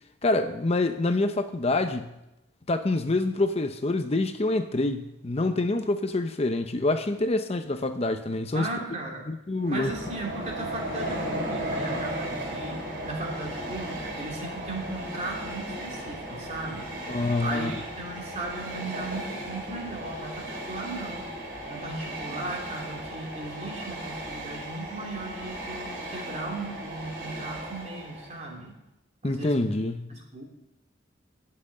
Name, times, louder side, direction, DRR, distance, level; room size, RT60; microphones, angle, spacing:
voice 1, 0.2-2.1 2.7-8.7 9.3-9.9 17.1-17.7 29.2-30.1, left 2 dB, 35° left, 0.7 m, -26 dB
voice 2, 8.5-9.3 9.6-21.3 21.7-28.7 29.2-29.7 30.1-30.4, right 2 dB, 40° right, 3.1 m, -37 dB
Train, 9.6-28.5, right 1 dB, 70° right, 3.5 m, -36 dB
10.5 x 7.8 x 9.6 m
head